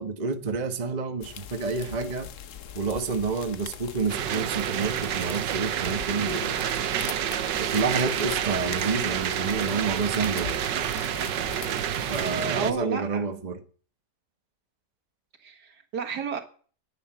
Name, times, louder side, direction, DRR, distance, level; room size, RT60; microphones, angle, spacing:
voice 1, 0.0-2.3 2.7-6.6 7.6-10.6 12.1-13.6, right 4 dB, 30° right, 1.1 m, -29 dB
sound 1, 1.2-12.5, left 8 dB, 55° left, 1.1 m, -42 dB
sound 2, 4.1-12.7, right 10 dB, 90° right, 1.5 m, -29 dB
voice 2, 12.6-13.4 15.4-16.4, right 6 dB, 70° right, 2.1 m, -32 dB
10.0 x 9.8 x 9.1 m
omnidirectional pair, 1.8 m